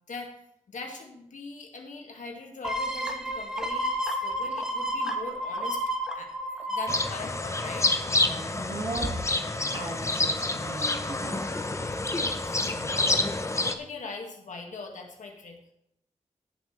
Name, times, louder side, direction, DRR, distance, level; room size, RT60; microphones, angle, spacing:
voice 1, 0.7-5.8 6.1-7.9 12.4-15.6, left 4 dB, 85° left, 2 dB, 1.8 m, -41 dB
sound 1, 2.6-8.1 8.6-8.7, equal, 5° right, 1.3 m, -31 dB
sound 2, 6.9-13.7, left 2 dB, 25° left, 0.7 m, -28 dB
voice 2, 8.2-11.5, right 2 dB, 55° right, -1 dB, 1.9 m, -37 dB
15.0 x 7.3 x 3.2 m, 0.77 s
wide cardioid pair, 105°, 13 cm